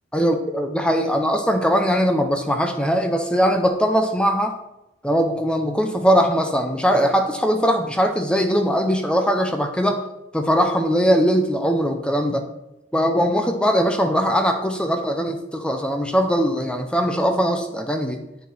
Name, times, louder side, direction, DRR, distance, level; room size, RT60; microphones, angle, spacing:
voice 1, 0.1-4.5 5.0-10.0 10.3-12.4 12.9-18.2, equal, 5° left, 5 dB, 0.7 m, -20 dB
8.3 x 7.2 x 4.3 m, 0.90 s
head